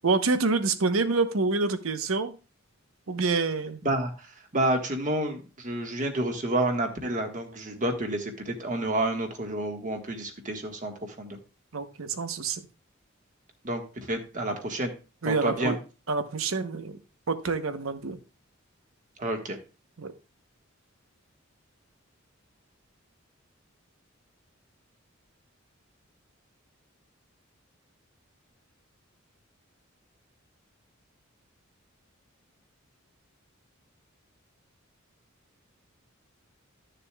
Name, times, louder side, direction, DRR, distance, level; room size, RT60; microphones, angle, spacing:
voice 1, 0.0-2.3 3.1-3.8 11.7-12.7 15.2-15.8 16.1-17.0 17.3-18.2 20.0-20.1, right 4 dB, 80° right, 10 dB, 0.9 m, -27 dB
voice 2, 3.8-11.4 13.6-14.9 15.2-15.8 19.2-19.6, right 1 dB, 40° right, 4 dB, 1.5 m, -29 dB
13.0 x 6.7 x 2.3 m, 0.33 s
head